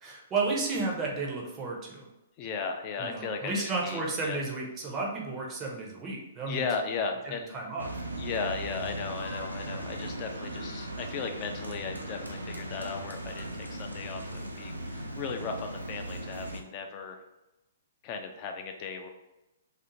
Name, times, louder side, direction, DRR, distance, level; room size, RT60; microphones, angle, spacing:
voice 1, 0.0-2.1 3.0-6.7 7.2-8.0, right 3 dB, 20° right, -2 dB, 0.6 m, -33 dB
voice 2, 2.4-4.4 6.4-7.5 8.1-17.2 18.0-19.1, left 5 dB, 30° left, 4 dB, 0.4 m, -36 dB
sound 1, 7.8-16.6, right 1 dB, 85° right, 0.4 m, -38 dB
2.5 x 2.4 x 2.8 m, 0.96 s
figure-of-eight pair, 115°, 0 cm